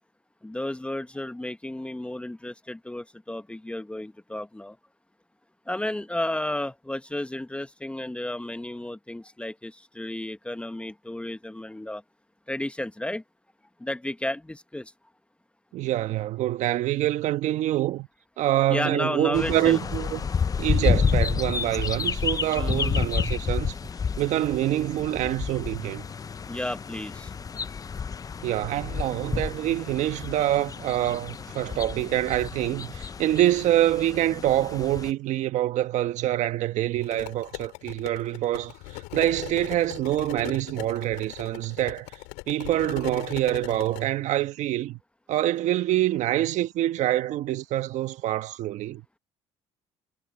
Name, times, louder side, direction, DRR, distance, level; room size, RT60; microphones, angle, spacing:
voice 1, 0.4-4.8 5.7-12.0 12.5-13.2 13.8-14.9 18.7-19.8 22.5-23.0 26.5-27.3, left 1 dB, 10° left, 1.1 m, -33 dB
voice 2, 15.7-18.1 18.4-20.2 20.6-23.7 24.2-26.0 28.4-42.1 42.5-45.0 45.3-49.0, right 13 dB, 70° right, 1.3 m, -26 dB
sound 1, 19.3-35.1, left 6 dB, 30° left, 0.6 m, -30 dB
sound 2, 37.0-44.1, left 26 dB, 90° left, 5.2 m, -40 dB
supercardioid pair, 80°, 13 cm